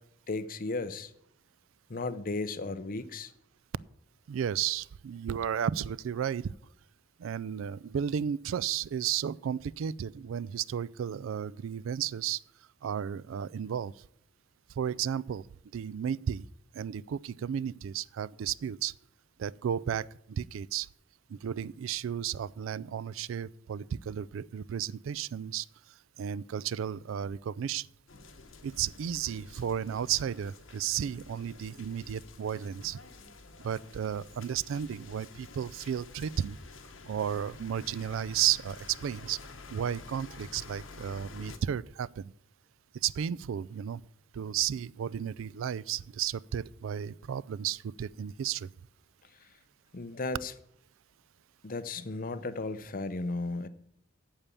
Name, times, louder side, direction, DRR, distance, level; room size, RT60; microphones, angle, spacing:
voice 1, 0.3-1.1 1.9-3.3 49.9-50.5 51.6-53.7, left 3 dB, 45° left, 0.7 m, -35 dB
voice 2, 4.3-6.5 7.2-12.4 12.8-13.9 14.7-15.5 15.7-16.5 16.7-18.9 19.4-20.9 21.3-25.7 26.2-27.9 28.6-33.0 33.6-36.6 37.0-39.4 39.7-42.3 42.9-44.0 44.3-48.7, right 9 dB, 80° right, 0.3 m, -33 dB
sound 1, 28.1-41.6, left 3 dB, 75° left, 1.1 m, -50 dB
8.8 x 7.2 x 8.3 m
head